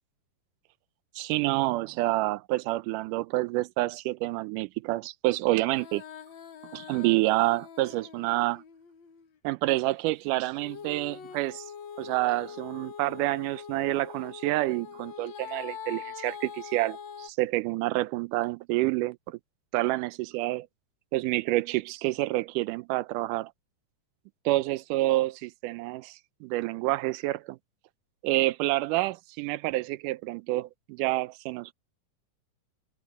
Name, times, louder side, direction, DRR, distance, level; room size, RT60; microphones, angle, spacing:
voice 1, 1.2-6.0 6.7-8.6 9.4-11.7 12.0-19.4 19.7-20.7 21.1-23.5 24.5-27.6 28.2-31.7, right 19 dB, 90° right, 2.2 m, -28 dB
Female singing, 5.6-9.4 10.6-17.3, left 7 dB, 65° left, 1.2 m, -43 dB
omnidirectional pair, 3.6 m